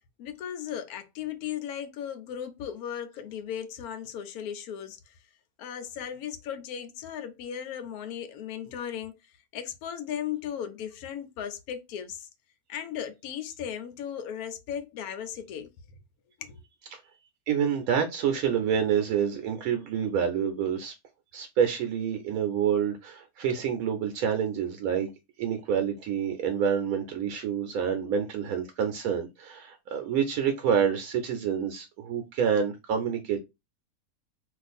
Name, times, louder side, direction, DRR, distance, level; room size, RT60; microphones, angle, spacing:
voice 1, 0.2-5.1 5.6-9.2 9.5-12.3 12.7-15.7 16.4-16.6, left 9 dB, 85° left, 1.1 m, -36 dB
voice 2, 17.5-20.9 21.3-25.1 25.4-33.4, right 7 dB, 80° right, 1.0 m, -27 dB
2.4 x 2.4 x 4.0 m
omnidirectional pair, 1.5 m